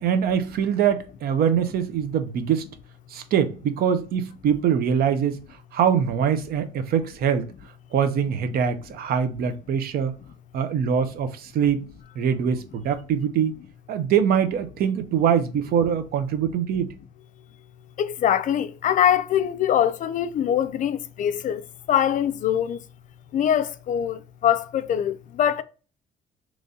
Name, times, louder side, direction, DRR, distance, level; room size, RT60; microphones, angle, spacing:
voice 1, 0.0-2.7 3.1-5.4 5.7-7.5 7.9-10.2 10.5-11.8 12.2-13.6 13.9-16.9, right 8 dB, 65° right, 0.6 m, -23 dB
voice 2, 18.0-22.8 23.3-25.6, left 10 dB, 50° left, 0.4 m, -23 dB
3.1 x 2.7 x 3.6 m
cardioid pair, 110°, 17 cm